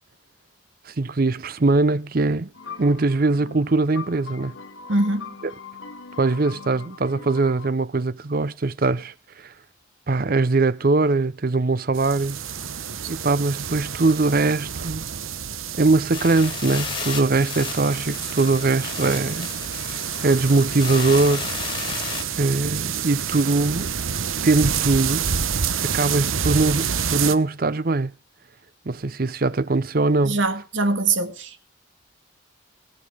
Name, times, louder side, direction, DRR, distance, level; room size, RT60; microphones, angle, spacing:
voice 1, 0.9-2.5 2.8-4.6 6.2-9.5 10.1-12.4 13.1-15.0 15.8-22.1 22.3-23.9 24.4-25.3 25.8-28.1 28.9-30.4, right 3 dB, 45° right, 0.6 m, -21 dB
sound 1, 2.5-7.7, left 5 dB, 70° left, 1.1 m, -40 dB
voice 2, 4.9-5.3 15.1-15.2 30.2-31.6, right 3 dB, 70° right, 2.0 m, -23 dB
sound 2, 11.9-27.3, right 7 dB, 90° right, 1.0 m, -28 dB
sound 3, 16.1-22.2, left 5 dB, 25° left, 2.5 m, -33 dB
21.5 x 7.6 x 4.9 m
head